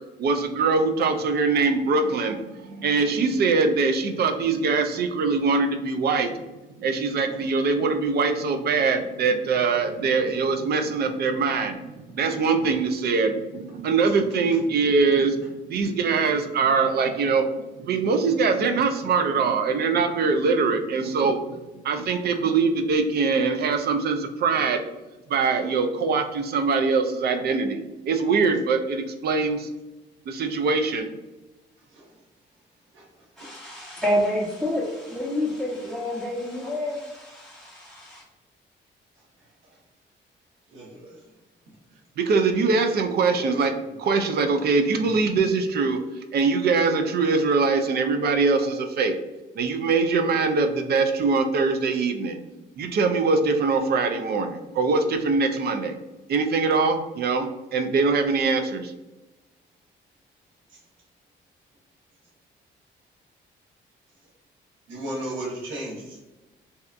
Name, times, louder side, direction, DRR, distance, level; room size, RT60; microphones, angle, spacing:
voice 1, 0.2-6.4 6.8-21.4 21.8-24.8 25.3-29.7 30.3-31.1 42.2-43.7 44.0-46.0 46.3-49.1 49.6-52.4 52.8-56.0 56.3-58.9, right 4 dB, 55° right, 6 dB, 0.4 m, -23 dB
voice 2, 33.4-38.2, left 1 dB, ahead, -7 dB, 0.6 m, -28 dB
voice 3, 40.7-41.2 43.3-43.8 64.9-66.2, right 1 dB, 80° right, -3 dB, 0.9 m, -35 dB
2.7 x 2.2 x 2.4 m, 1.1 s
cardioid pair, 90°, 20 cm